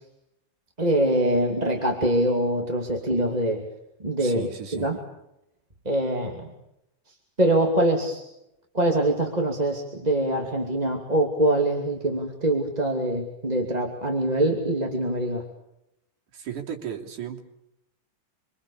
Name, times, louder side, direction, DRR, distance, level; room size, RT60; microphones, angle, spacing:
voice 1, 0.8-3.6 4.0-5.0 5.8-6.4 7.4-8.2 8.7-15.4, right 1 dB, 15° right, 1 dB, 2.5 m, -24 dB
voice 2, 4.2-4.9 16.3-17.4, right 8 dB, 65° right, 0 dB, 4.6 m, -35 dB
27.5 x 25.0 x 7.1 m, 0.85 s
omnidirectional pair, 3.8 m